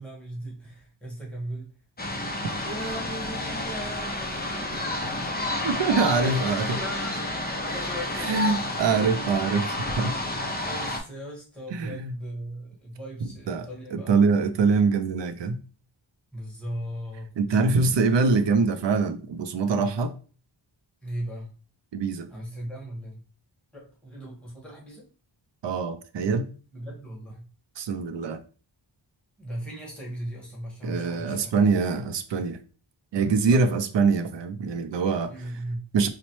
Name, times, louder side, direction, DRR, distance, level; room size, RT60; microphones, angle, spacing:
voice 1, 0.0-1.7 2.6-5.4 5.9-7.2 7.6-8.6 10.6-14.5 16.3-17.6 21.0-21.5 22.3-23.2 23.7-25.0 26.7-27.5 29.4-31.6 33.5-33.8 35.3-35.9, right 1 dB, ahead, 1.4 m, -38 dB
sound 1, 2.0-11.0, left 1 dB, 20° left, 0.6 m, -30 dB
voice 2, 5.6-6.6 8.2-10.2 11.7-12.1 13.5-15.6 17.4-20.1 21.9-22.3 25.6-26.5 27.8-28.4 30.8-32.6 33.1-35.3 35.9-36.1, right 4 dB, 65° right, 0.5 m, -24 dB
4.0 x 2.1 x 3.0 m
wide cardioid pair, 85°, 47 cm